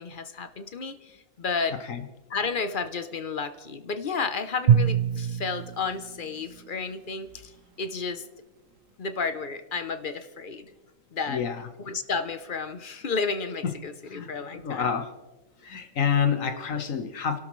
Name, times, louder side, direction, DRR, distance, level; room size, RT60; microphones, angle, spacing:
voice 1, 0.0-1.8 2.3-7.5 7.8-8.2 9.0-10.7 11.1-11.5 11.8-14.9, left 5 dB, 45° left, 0.9 m, -32 dB
Drum, 4.7-7.1, right 8 dB, 80° right, 1.1 m, -25 dB
voice 2, 11.3-11.7 13.6-13.7 14.1-15.1 15.6-17.4, left 7 dB, 85° left, 1.7 m, -28 dB
29.5 x 12.5 x 3.2 m
omnidirectional pair, 1.3 m